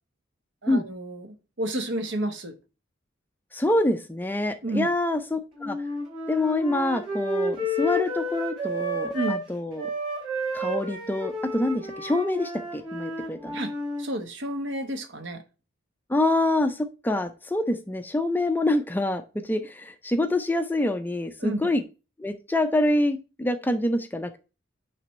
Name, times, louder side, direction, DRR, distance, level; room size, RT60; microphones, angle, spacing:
voice 1, 0.6-2.5 4.6-4.9 9.1-9.4 13.5-13.7 14.0-15.4 21.4-21.6, right 1 dB, 65° right, 1.1 m, -30 dB
voice 2, 3.5-5.8 6.3-9.9 10.5-13.6 16.1-21.8 22.2-24.4, left 1 dB, 10° left, 0.4 m, -26 dB
Wind instrument woodwind instrument, 5.6-9.4 9.8-14.0, equal, 25° right, 3.4 m, -31 dB
8.9 x 3.4 x 4.1 m
head